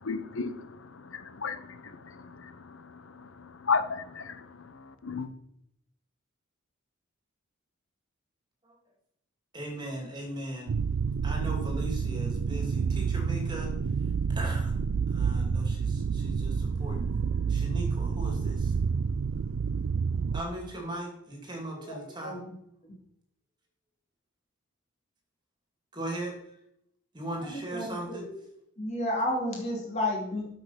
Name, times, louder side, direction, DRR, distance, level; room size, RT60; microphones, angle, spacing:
voice 1, 0.0-5.3, left 5 dB, 65° left, 11 dB, 0.9 m, -35 dB
voice 2, 9.5-10.7 11.2-13.7 14.3-14.7 15.1-17.1 17.5-18.7 20.3-22.4 25.9-26.6 27.1-28.2, right 1 dB, 20° right, 0 dB, 2.6 m, -38 dB
sound 1, 10.7-20.4, right 5 dB, 60° right, 0.4 m, -29 dB
voice 3, 27.5-27.9 28.1-28.4 28.8-30.5, left 1 dB, 30° left, 0 dB, 2.8 m, -31 dB
8.4 x 6.8 x 5.8 m, 0.77 s
head